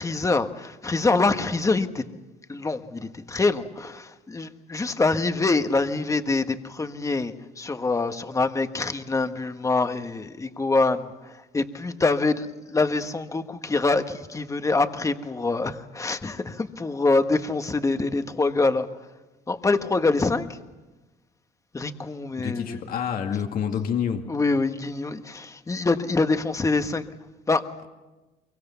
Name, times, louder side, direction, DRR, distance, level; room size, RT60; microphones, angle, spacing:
voice 1, 0.0-2.0 2.5-18.9 19.5-20.6 21.7-22.8 24.3-27.0 27.5-27.6, left 3 dB, 20° left, 8 dB, 1.4 m, -25 dB
voice 2, 22.4-24.3, left 8 dB, 60° left, 4 dB, 2.1 m, -28 dB
24.0 x 23.0 x 7.1 m, 1.1 s
cardioid pair, 110°, 17 cm